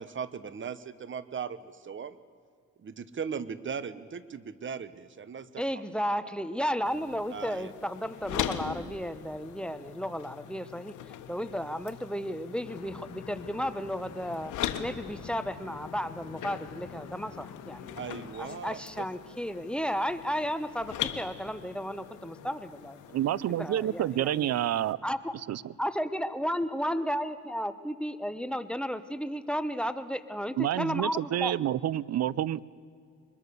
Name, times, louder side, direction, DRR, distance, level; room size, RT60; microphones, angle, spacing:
voice 1, 0.0-2.2 2.8-5.6 7.3-7.7 17.9-19.1, right 6 dB, 40° right, 15 dB, 1.1 m, -38 dB
voice 2, 5.6-14.5 14.8-18.0 18.4-23.0 23.5-24.5 25.0-25.4 25.8-31.5, equal, 5° left, 13 dB, 1.0 m, -33 dB
sound 1, 6.8-24.9, left 10 dB, 80° left, 1.4 m, -41 dB
sound 2, 12.6-18.3, left 7 dB, 55° left, 1.8 m, -46 dB
voice 3, 23.1-25.0 25.5-25.7 30.6-32.6, right 12 dB, 60° right, 22 dB, 0.6 m, -28 dB
23.5 x 21.0 x 7.0 m, 2.3 s
cardioid pair, 90°, 30 cm